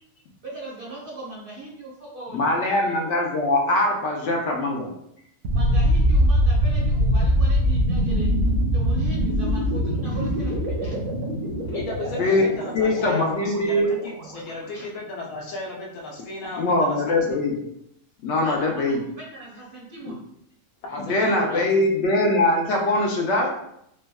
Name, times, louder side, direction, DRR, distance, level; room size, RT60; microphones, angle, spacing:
voice 1, 0.4-3.0 5.5-8.3 8.7-11.0 13.0-13.3 14.7-14.8 18.4-20.2, right 1 dB, 55° right, -4 dB, 0.7 m, -38 dB
voice 2, 2.3-4.9 12.2-12.5 12.7-13.9 16.6-17.5 18.2-19.0 20.1-20.2 21.1-23.5, left 2 dB, 65° left, 0 dB, 0.8 m, -22 dB
sound 1, 5.4-14.3, equal, 80° right, 1.0 m, -23 dB
voice 3, 11.6-17.4 20.8-21.8, left 3 dB, 90° left, -2 dB, 1.2 m, -34 dB
3.5 x 2.1 x 2.2 m, 0.76 s
omnidirectional pair, 1.4 m